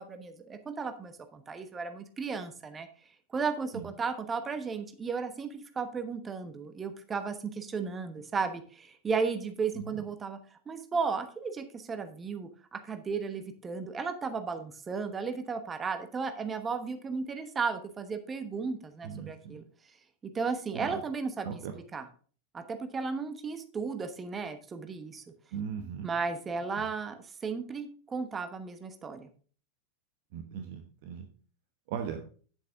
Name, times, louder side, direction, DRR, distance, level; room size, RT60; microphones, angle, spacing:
voice 1, 0.0-2.9 3.3-10.4 10.7-19.6 20.3-21.6 21.9-22.0 22.5-25.2 26.0-29.3, right 5 dB, 20° right, 9 dB, 1.1 m, -34 dB
voice 2, 9.7-10.1 19.0-19.6 20.7-21.0 21.4-21.7 25.5-26.1 26.8-26.9 30.3-31.2 31.9-32.2, right 7 dB, 50° right, 5 dB, 1.0 m, -38 dB
9.3 x 8.0 x 3.6 m, 0.41 s
figure-of-eight pair, 90°, 0 cm